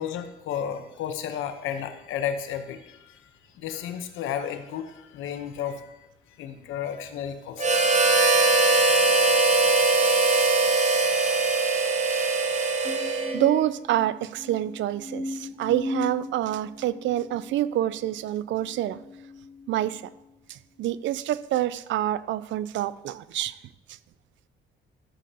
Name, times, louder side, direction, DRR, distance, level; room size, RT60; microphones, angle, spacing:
voice 1, 0.0-3.3 3.5-8.2 8.8-9.1, left 9 dB, 90° left, 8 dB, 0.8 m, -33 dB
Harmonica, 7.6-13.6, right 3 dB, 35° right, 1.1 m, -21 dB
sound 1, 12.8-20.3 20.9-21.4, left 1 dB, 15° left, 2.1 m, -38 dB
voice 2, 13.3-19.0 19.7-20.0 20.5-23.6, right 13 dB, 70° right, 17 dB, 0.4 m, -27 dB
13.0 x 7.3 x 2.8 m, 0.94 s
cardioid pair, 90°, 20 cm